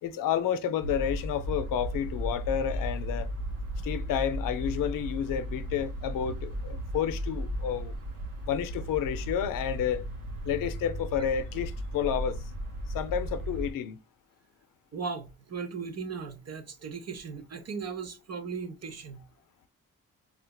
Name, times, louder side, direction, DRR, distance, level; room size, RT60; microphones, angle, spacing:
voice 1, 0.0-3.3 3.8-7.9 8.5-10.0 10.4-12.4 12.9-14.0, left 9 dB, 70° left, 0.5 m, -30 dB
sound 1, 0.8-13.7, equal, 80° right, 1.0 m, -35 dB
voice 2, 14.9-19.2, right 5 dB, 45° right, 0.7 m, -37 dB
4.4 x 2.4 x 2.2 m
supercardioid pair, 45°, 34 cm